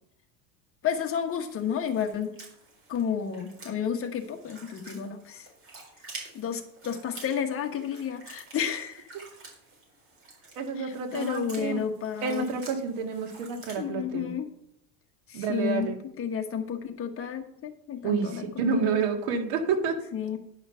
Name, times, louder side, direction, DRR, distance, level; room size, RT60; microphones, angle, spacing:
voice 1, 0.8-2.3 2.9-5.5 6.3-9.1 10.8-12.5 13.8-14.5 15.3-19.0 20.1-20.4, left 8 dB, 30° left, 5 dB, 1.2 m, -31 dB
sound 1, 1.1-13.8, right 3 dB, 30° right, 4.2 m, -49 dB
voice 2, 10.6-11.8 12.2-14.3 15.3-16.0 18.0-20.0, right 5 dB, 65° right, 4 dB, 1.9 m, -29 dB
10.0 x 5.7 x 5.6 m, 0.73 s
supercardioid pair, 130°, 43 cm